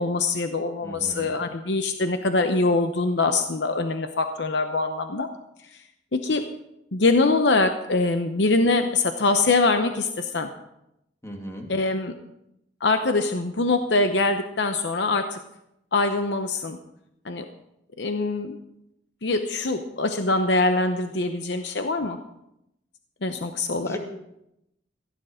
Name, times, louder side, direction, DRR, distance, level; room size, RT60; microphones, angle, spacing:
voice 1, 0.0-5.3 6.1-6.4 6.9-10.5 11.7-12.1 12.8-15.4 15.9-16.8 17.2-17.4 18.0-18.5 19.2-22.2 23.2-24.0, left 3 dB, 70° left, 7 dB, 0.8 m, -23 dB
voice 2, 0.8-1.3 11.2-11.7 23.8-24.0, equal, 15° left, 2 dB, 2.3 m, -37 dB
16.0 x 10.5 x 5.1 m, 0.84 s
head